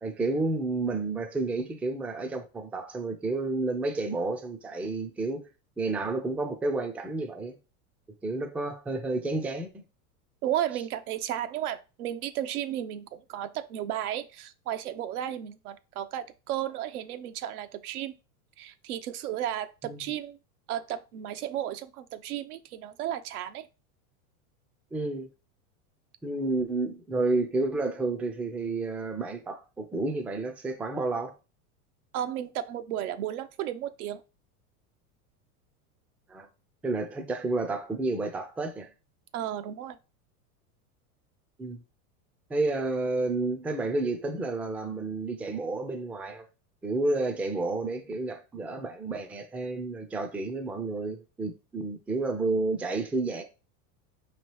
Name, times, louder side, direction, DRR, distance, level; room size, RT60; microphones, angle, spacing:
voice 1, 0.0-5.5 5.8-7.6 8.2-9.8 19.8-20.1 24.9-25.3 26.2-31.3 36.3-36.5 36.8-38.9 41.6-41.8 42.5-46.5 46.8-53.4, right 2 dB, 5° right, 0.3 m, -30 dB
voice 2, 10.4-18.1 18.6-20.4 20.7-23.7 32.1-34.2 39.3-40.0, right 11 dB, 80° right, 0.7 m, -34 dB
5.1 x 3.0 x 3.2 m
hypercardioid pair, 110°, 44 cm